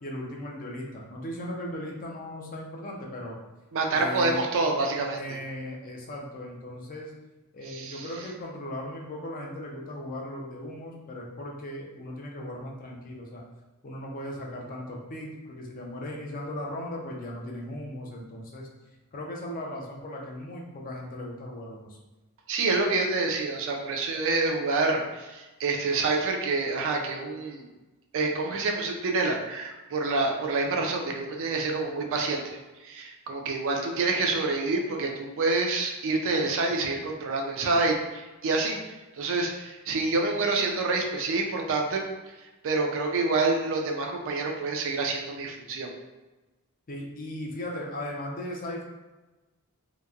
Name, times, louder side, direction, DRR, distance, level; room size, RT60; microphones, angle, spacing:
voice 1, 0.0-3.4 3.9-4.4 5.1-7.1 7.5-13.4 13.8-18.7 19.1-22.0 46.9-48.8, left 1 dB, 40° left, -1 dB, 0.5 m, -37 dB
voice 2, 3.7-5.2 7.7-8.1 22.5-27.7 28.1-32.6 32.8-38.8 39.2-42.0 42.6-45.9, right 3 dB, 60° right, 2 dB, 0.4 m, -27 dB
2.8 x 2.1 x 2.3 m, 1.1 s
head